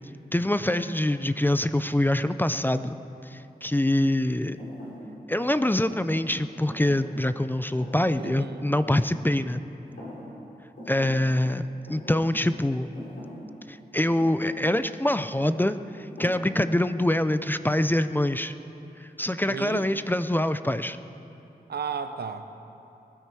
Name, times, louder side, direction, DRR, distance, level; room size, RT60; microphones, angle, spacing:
voice 1, 0.3-2.9 3.3-4.6 5.3-9.6 10.9-11.6 11.9-12.9 13.7-18.5 19.0-21.0, left 1 dB, 10° left, 12 dB, 0.4 m, -25 dB
Thump thud, 4.6-9.6 9.9-10.5 10.8-16.9, equal, 85° left, 4.3 m, -44 dB
voice 2, 8.2-8.7 19.5-19.8 21.7-22.6, right 6 dB, 85° right, 9 dB, 0.7 m, -34 dB
20.0 x 12.5 x 4.7 m, 2.9 s
wide cardioid pair, 100°, 16 cm